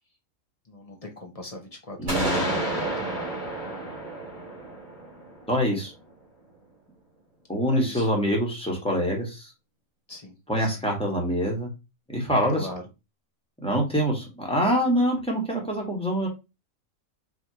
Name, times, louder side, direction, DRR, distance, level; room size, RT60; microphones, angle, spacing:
voice 1, 0.7-3.4 7.7-8.1 10.1-10.8 12.6-12.8, left 1 dB, 35° left, 2 dB, 0.7 m, -40 dB
voice 2, 2.0-2.5 5.5-5.9 7.5-9.5 10.5-11.7 12.1-12.7 13.6-16.3, equal, 5° left, -1 dB, 1.3 m, -25 dB
sound 1, 2.1-5.9, right 1 dB, 70° right, 2.8 m, -30 dB
5.1 x 2.8 x 2.9 m, 0.26 s
omnidirectional pair, 1.4 m